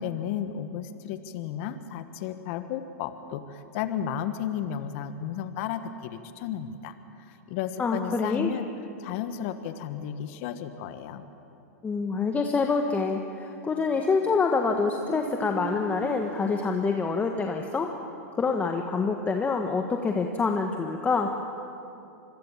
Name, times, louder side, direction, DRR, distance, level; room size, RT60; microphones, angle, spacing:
voice 1, 0.0-8.7 9.0-11.2, left 9 dB, 55° left, 9 dB, 1.4 m, -33 dB
voice 2, 7.8-8.5 11.8-17.9 18.4-21.3, left 4 dB, 15° left, 3 dB, 1.5 m, -26 dB
Motorcycle, 14.0-17.6, right 5 dB, 85° right, 4.3 m, -41 dB
26.0 x 22.0 x 7.4 m, 2.8 s
hypercardioid pair, 120°, 8 cm